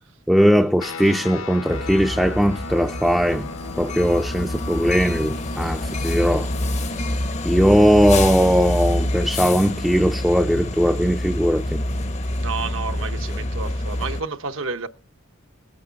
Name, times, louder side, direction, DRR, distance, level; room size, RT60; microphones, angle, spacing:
voice 1, 0.3-3.5 3.8-6.5 7.4-11.8, equal, ahead, 0.5 m, -19 dB
sound 1, 0.8-12.5, left 4 dB, 70° left, 1.0 m, -39 dB
sound 2, 1.7-14.2, left 1 dB, 35° left, 0.7 m, -27 dB
voice 2, 12.4-14.9, right 4 dB, 65° right, 0.9 m, -30 dB
19.0 x 8.7 x 3.9 m
head